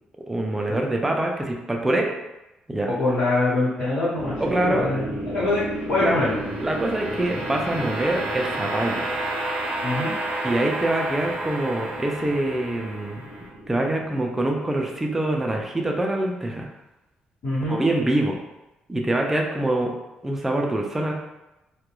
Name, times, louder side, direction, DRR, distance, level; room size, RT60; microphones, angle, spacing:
voice 1, 0.3-2.1 2.7-2.9 4.4-4.8 6.0-6.2 6.6-9.0 10.4-13.3 13.7-16.7 17.7-18.4 18.9-19.9 20.2-21.1, right 1 dB, 10° right, 1 dB, 0.3 m, -24 dB
voice 2, 2.8-6.4 9.8-10.1 17.4-17.8, left 2 dB, 80° left, -15 dB, 1.2 m, -24 dB
sound 1, 4.2-15.4, right 1 dB, 65° right, 0.6 m, -31 dB
2.3 x 2.2 x 2.9 m, 0.99 s
cardioid pair, 160°, 3 cm